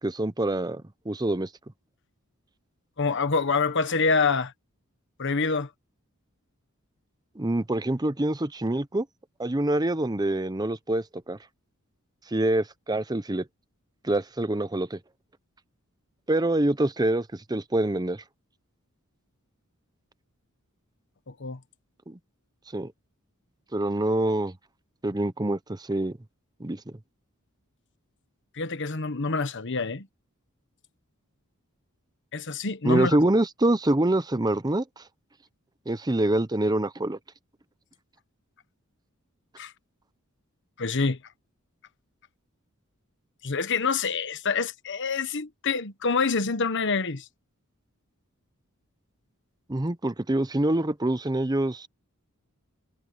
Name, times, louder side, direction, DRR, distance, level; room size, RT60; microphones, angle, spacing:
voice 1, 0.0-1.5 7.4-9.1 9.4-11.4 12.3-13.5 14.0-15.0 16.3-18.2 22.1-22.2 22.7-22.9 23.7-24.5 25.0-26.2 26.6-27.0 32.8-34.8 35.9-37.2 49.7-51.9, right 1 dB, 20° right, 0.8 m, -25 dB
voice 2, 3.0-4.5 5.2-5.7 21.3-21.6 28.5-30.1 32.3-33.2 39.6-39.7 40.8-41.2 43.4-47.3, left 4 dB, 55° left, 1.2 m, -26 dB
head